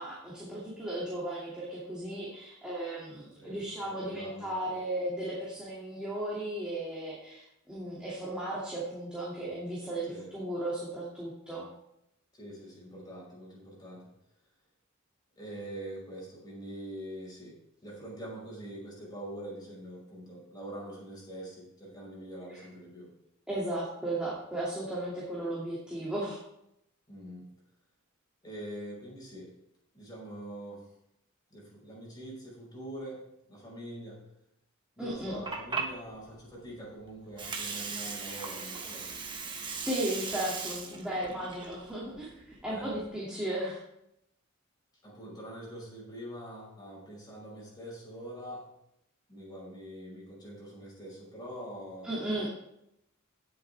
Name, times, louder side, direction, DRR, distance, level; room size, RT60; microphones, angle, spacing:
voice 1, 0.0-11.7 23.5-26.4 35.0-35.4 39.8-43.8 52.0-52.5, right 1 dB, 5° right, -7 dB, 2.5 m, -35 dB
voice 2, 3.4-4.7 10.1-10.3 12.3-14.1 15.4-23.1 27.1-27.5 28.4-29.5 29.9-30.9 31.5-34.2 35.0-39.1 42.7-42.9 45.0-48.7 49.3-52.1, right 1 dB, 20° left, -3 dB, 5.2 m, -44 dB
Water, 35.1-43.1, right 4 dB, 25° right, 1.3 m, -39 dB
17.5 x 7.9 x 3.5 m, 0.81 s
head